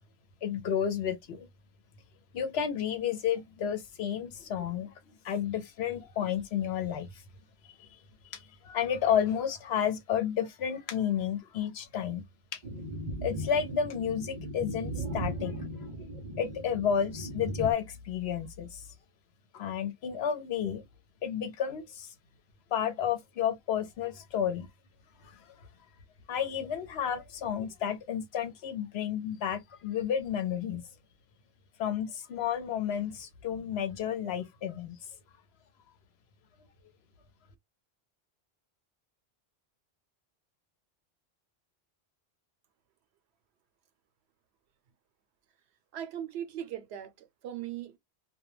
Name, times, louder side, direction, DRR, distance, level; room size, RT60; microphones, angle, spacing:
voice 1, 0.4-1.5 2.3-7.1 7.8-7.9 8.2-12.2 12.5-12.6 13.2-15.5 16.4-18.8 19.5-20.8 21.2-22.1 22.7-24.7 26.3-30.8 31.8-35.0, left 8 dB, 80° left, 0.9 m, -31 dB
sound 1, 12.6-17.7, right 1 dB, 50° right, 0.6 m, -37 dB
voice 2, 45.9-48.0, right 10 dB, 85° right, 0.8 m, -39 dB
2.2 x 2.2 x 3.0 m
omnidirectional pair, 1.1 m